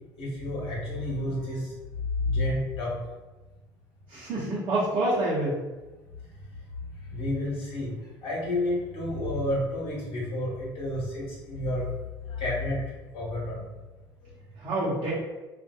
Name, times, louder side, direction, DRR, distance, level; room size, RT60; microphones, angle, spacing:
voice 1, 0.2-1.6 2.2-2.9 7.1-7.9 8.2-11.8 12.4-12.8 13.1-13.6, left 1 dB, 55° left, -6 dB, 1.2 m, -30 dB
voice 2, 4.1-5.6 14.6-15.1, right 1 dB, 45° right, -8 dB, 0.8 m, -27 dB
2.6 x 2.4 x 2.3 m, 1.1 s
figure-of-eight pair, 60°, 12 cm